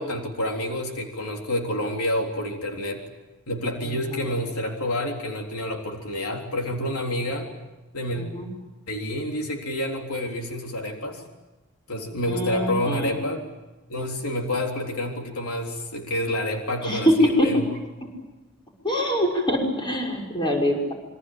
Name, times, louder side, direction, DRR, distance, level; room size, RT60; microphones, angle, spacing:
voice 1, 0.0-3.1 3.5-7.5 7.9-8.2 8.9-11.2 11.9-13.4 13.9-17.7, left 1 dB, 80° left, 2 dB, 3.7 m, -28 dB
voice 2, 3.8-4.2 8.1-8.5 12.3-13.2 16.8-17.6 18.8-20.9, equal, 20° left, 0 dB, 6.2 m, -24 dB
27.0 x 24.0 x 8.9 m, 1.1 s
head